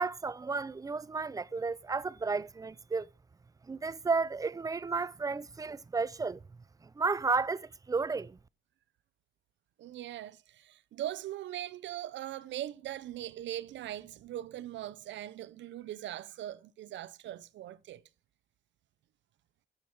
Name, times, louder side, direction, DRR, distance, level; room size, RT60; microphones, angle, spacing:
voice 1, 0.0-3.1 3.7-6.4 6.8-8.4, right 4 dB, 20° right, 0.4 m, -32 dB
voice 2, 9.8-18.0, right 12 dB, 70° right, 0.5 m, -40 dB
8.0 x 6.9 x 4.4 m
cardioid pair, 90°, 20 cm